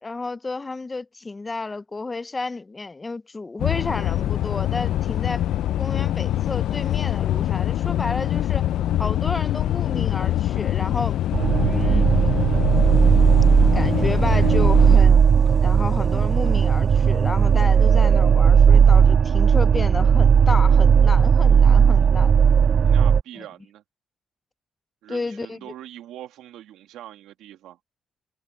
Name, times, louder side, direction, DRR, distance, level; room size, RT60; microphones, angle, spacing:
voice 1, 0.0-5.4 5.8-8.7 9.0-11.2 11.6-12.1 13.7-15.2 15.6-22.3 23.4-23.5 25.1-25.6, left 3 dB, 25° left, 0.5 m, -31 dB
sound 1, 3.6-15.0, left 13 dB, 80° left, 0.4 m, -24 dB
sound 2, 11.3-23.2, right 7 dB, 50° right, 0.3 m, -16 dB
sound 3, 12.5-18.8, right 2 dB, 20° right, 1.6 m, -45 dB
voice 2, 22.8-23.8 25.0-27.8, right 12 dB, 90° right, 1.9 m, -42 dB
cardioid pair, 90°, 0 cm